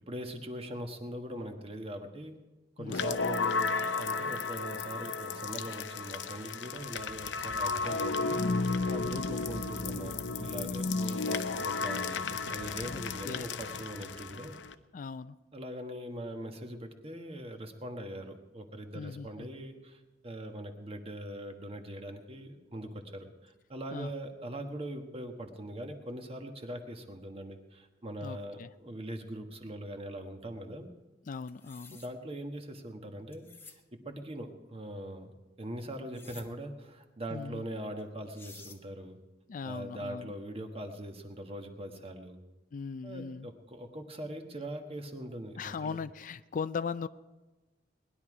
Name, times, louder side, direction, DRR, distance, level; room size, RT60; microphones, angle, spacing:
voice 1, 0.1-2.3 2.8-14.6 15.5-30.9 31.9-35.3 35.6-39.2 39.6-42.4 43.0-46.0, right 1 dB, 35° right, 5 dB, 1.4 m, -42 dB
voice 2, 2.8-3.1 9.0-9.3 12.8-13.5 14.9-15.4 18.9-19.5 23.9-24.1 28.2-28.7 31.3-32.0 37.3-37.7 39.5-40.3 42.7-43.5 45.6-47.1, left 5 dB, 45° left, 14 dB, 0.4 m, -39 dB
sound 1, 2.9-14.7, left 4 dB, 80° left, 0.7 m, -33 dB
sound 2, 31.5-32.1 33.3-33.8 36.1-36.5 38.0-38.1 38.3-38.8, left 4 dB, 15° left, 1.0 m, -51 dB
19.5 x 11.0 x 4.9 m, 1.1 s
head